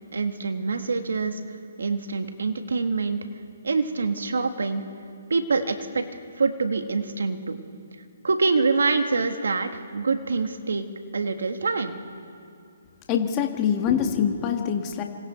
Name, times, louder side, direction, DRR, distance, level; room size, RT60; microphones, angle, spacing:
voice 1, 0.1-1.4 1.8-3.2 3.6-4.8 5.3-6.0 6.4-7.6 8.2-10.9 11.1-12.0, right 4 dB, 85° right, 7 dB, 1.8 m, -25 dB
voice 2, 13.1-15.0, left 8 dB, 25° left, 4 dB, 1.6 m, -24 dB
26.0 x 26.0 x 4.5 m, 2.5 s
hypercardioid pair, 155°, 0 cm